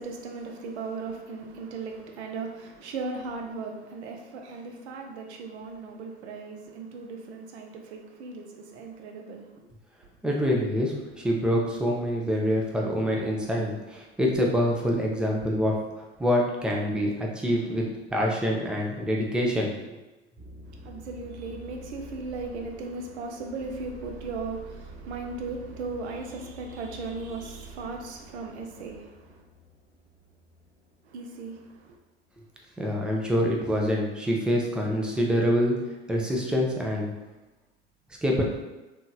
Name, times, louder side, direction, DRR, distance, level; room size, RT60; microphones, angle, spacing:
voice 1, 0.0-9.7 20.7-29.4 31.0-32.0, right 3 dB, 70° right, 0.6 m, -37 dB
voice 2, 10.2-17.8 18.1-19.8 32.8-35.8 36.1-37.1 38.2-38.4, equal, 5° right, 0.3 m, -26 dB
sound 1, 20.4-33.4 33.7-34.3, right 1 dB, 30° right, 0.8 m, -48 dB
2.9 x 2.7 x 2.2 m
hypercardioid pair, 80°, 35 cm